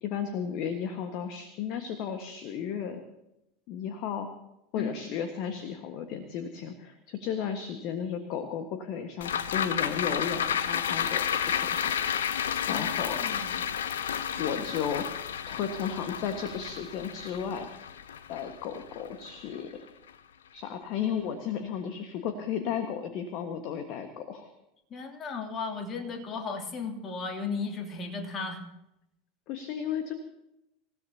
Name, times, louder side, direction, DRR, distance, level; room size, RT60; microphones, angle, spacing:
voice 1, 0.0-3.0 3.7-4.3 4.7-13.4 14.4-17.7 18.3-19.7 20.5-24.5 29.5-30.1, left 7 dB, 50° left, 7 dB, 1.6 m, -34 dB
voice 2, 4.7-5.1 12.7-13.5 24.9-28.6, left 4 dB, 35° left, 3 dB, 2.9 m, -35 dB
sound 1, 9.2-19.7 20.1-20.2, left 8 dB, 70° left, 0.7 m, -31 dB
27.0 x 16.0 x 2.9 m, 0.87 s
figure-of-eight pair, 75°, 0 cm